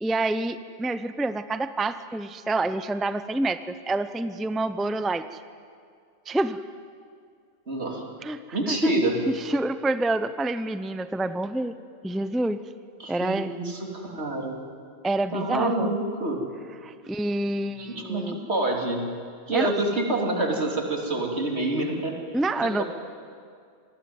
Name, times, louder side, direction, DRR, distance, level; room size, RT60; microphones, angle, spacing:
voice 1, 0.0-5.3 6.3-6.6 8.2-8.9 9.3-11.8 12.0-12.6 13.1-13.5 15.0-15.9 16.8-18.4 19.5-19.7 22.3-22.8, right 2 dB, ahead, 11 dB, 0.6 m, -27 dB
voice 2, 7.7-8.1 8.5-9.2 13.0-14.6 15.3-16.4 17.8-19.1 19.5-22.1 22.6-22.8, right 2 dB, 75° right, 0 dB, 3.5 m, -27 dB
26.5 x 19.5 x 9.6 m, 2.2 s
omnidirectional pair, 1.1 m